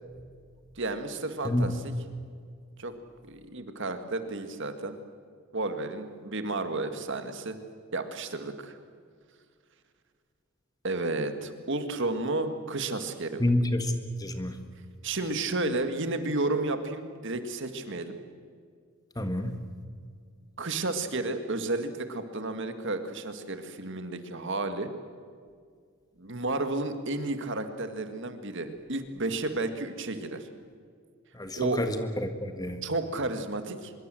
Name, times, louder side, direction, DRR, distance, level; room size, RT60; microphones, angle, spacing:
voice 1, 0.8-2.0 2.8-2.9 3.2-5.0 5.5-7.6 7.9-8.8 10.8-13.5 15.0-18.2 20.6-24.9 26.2-30.5 31.6-31.8 32.8-33.9, right 2 dB, 60° right, 8 dB, 2.0 m, -32 dB
voice 2, 13.4-13.9 14.2-14.6 19.2-19.6 31.3-32.8, left 1 dB, 15° left, 7 dB, 1.7 m, -28 dB
24.5 x 23.0 x 7.8 m, 2.1 s
head